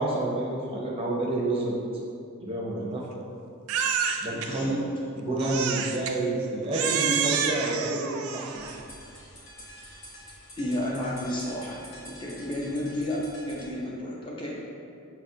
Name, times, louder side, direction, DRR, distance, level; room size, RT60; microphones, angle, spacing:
voice 1, 0.0-1.8 2.4-3.0 4.2-4.8 5.2-8.6, right 2 dB, 25° right, -3 dB, 0.5 m, -29 dB
Crying sobbing, 3.7-4.5 5.4-6.2 6.7-8.8, right 7 dB, 80° right, 0.3 m, -28 dB
voice 2, 4.3-4.8 10.6-14.6, left 1 dB, 25° left, -4 dB, 0.6 m, -32 dB
sound 1, 8.5-13.7, equal, 75° left, 0.8 m, -47 dB
5.7 x 2.3 x 2.6 m, 2.5 s
head